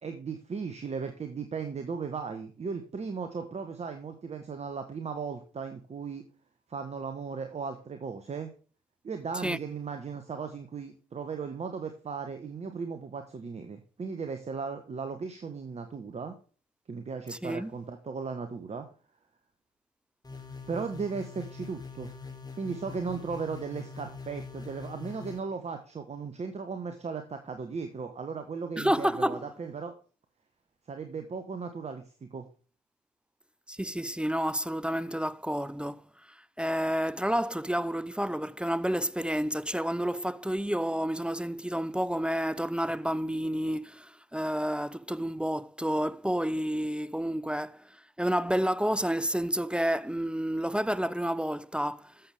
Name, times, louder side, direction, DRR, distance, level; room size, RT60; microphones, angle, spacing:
voice 1, 0.0-6.2 6.7-8.5 9.0-16.3 16.9-18.8 20.7-22.1 22.6-29.9 30.9-32.5, right 5 dB, 35° right, 1.5 m, -36 dB
voice 2, 17.3-17.7 28.8-29.5 33.7-36.0 36.6-47.8 48.2-52.1, equal, 5° right, 0.5 m, -30 dB
sound 1, 20.2-25.4, left 4 dB, 20° left, 3.5 m, -43 dB
13.0 x 7.5 x 3.6 m
hypercardioid pair, 50°, 18 cm